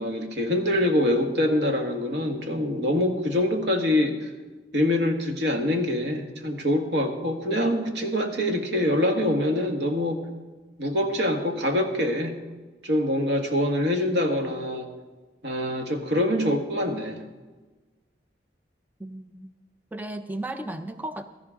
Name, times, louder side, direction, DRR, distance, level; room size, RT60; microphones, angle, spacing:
voice 1, 0.0-4.3 4.7-10.2 10.8-12.3 12.8-14.9 15.4-17.2, left 1 dB, 75° right, 4 dB, 1.6 m, -25 dB
voice 2, 19.0-19.5 19.9-21.2, right 1 dB, 10° right, 9 dB, 0.5 m, -34 dB
16.0 x 13.5 x 3.7 m, 1.3 s
head